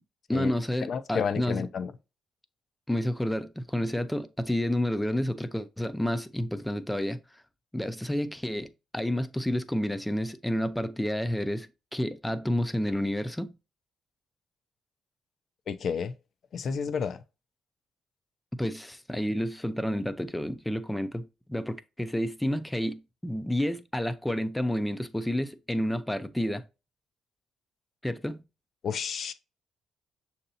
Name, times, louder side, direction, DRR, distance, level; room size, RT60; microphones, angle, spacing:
voice 1, 0.3-1.7 2.9-7.4 7.7-13.5 18.6-26.6 28.0-28.4, left 1 dB, 5° left, 0.5 m, -30 dB
voice 2, 0.8-1.9 15.7-16.1 16.5-17.2 28.8-29.3, left 6 dB, 55° left, 0.6 m, -31 dB
6.5 x 2.8 x 2.7 m
cardioid pair, 90°, 0 cm